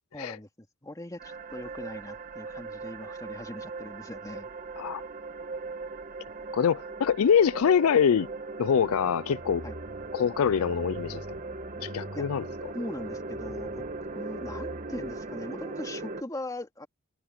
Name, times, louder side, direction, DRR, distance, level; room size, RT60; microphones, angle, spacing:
voice 1, 0.1-4.5 9.6-9.7 12.1-12.2 12.7-13.8 14.1-16.9, left 1 dB, 15° left, 2.6 m, -40 dB
sound 1, 1.2-16.2, right 3 dB, 35° right, 1.7 m, -39 dB
voice 2, 6.5-8.3 8.6-9.6 10.1-11.4 11.8-12.7, left 7 dB, 70° left, 0.4 m, -24 dB
sound 2, 8.7-15.6, equal, 40° left, 6.8 m, -46 dB
head